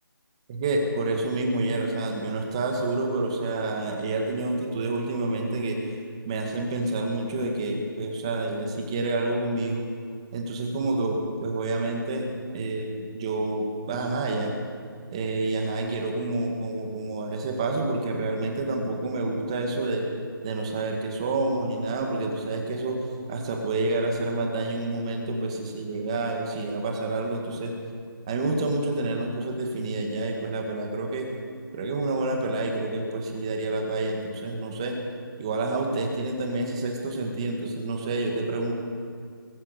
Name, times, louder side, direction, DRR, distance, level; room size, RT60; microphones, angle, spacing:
voice 1, 0.5-6.0 6.3-9.8 10.3-12.3 12.5-14.5 15.1-20.1 20.4-23.0 23.3-27.7 28.3-31.3 31.7-35.0 35.4-38.7, right 2 dB, 15° right, 1 dB, 1.9 m, -28 dB
22.0 x 16.0 x 8.2 m, 2.2 s
figure-of-eight pair, 175°, 12 cm